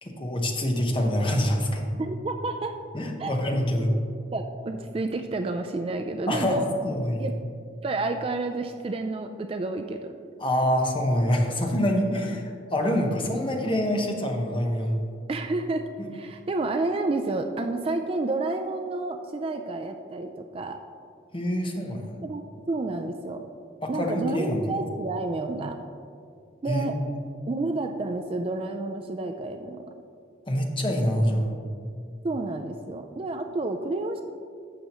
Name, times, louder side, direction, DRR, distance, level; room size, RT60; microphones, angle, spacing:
voice 1, 0.0-1.9 2.9-3.9 6.3-7.3 10.4-12.4 12.7-15.0 16.0-16.1 21.3-22.1 23.8-24.8 26.7-27.2 30.5-31.5, equal, 25° left, 2 dB, 0.9 m, -25 dB
voice 2, 2.0-2.7 3.2-3.4 4.3-6.7 7.2-7.3 7.8-10.1 11.7-12.3 15.3-20.8 22.2-23.4 23.9-25.8 26.6-27.0 27.5-29.9 32.2-34.2, right 2 dB, 30° right, 6 dB, 0.3 m, -30 dB
12.0 x 7.5 x 3.0 m, 2.4 s
head